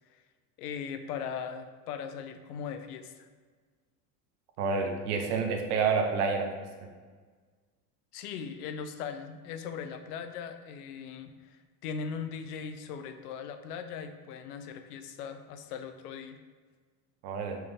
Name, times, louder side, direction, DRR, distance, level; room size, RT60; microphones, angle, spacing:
voice 1, 0.6-3.3 8.1-16.4, left 6 dB, 80° left, 8 dB, 0.6 m, -39 dB
voice 2, 4.6-6.5 17.2-17.6, right 5 dB, 75° right, 4 dB, 0.9 m, -28 dB
4.5 x 3.2 x 3.5 m, 1.5 s
hypercardioid pair, 80°, 45 cm